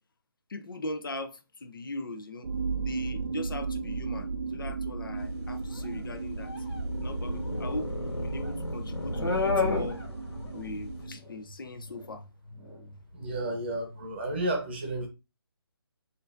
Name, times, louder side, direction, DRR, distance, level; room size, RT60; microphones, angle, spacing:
voice 1, 0.5-2.5 2.8-6.5 7.0-10.0 10.5-12.2, left 2 dB, 55° left, 0.7 m, -40 dB
sound 1, 2.4-11.2, right 4 dB, 60° right, 0.5 m, -36 dB
sound 2, 5.2-11.0, left 2 dB, 70° left, 1.6 m, -32 dB
sound 3, 9.0-14.0, left 1 dB, 5° left, 0.5 m, -49 dB
voice 2, 13.1-15.1, right 1 dB, 25° right, 0.9 m, -32 dB
6.4 x 2.6 x 2.5 m
hypercardioid pair, 175°, 14 cm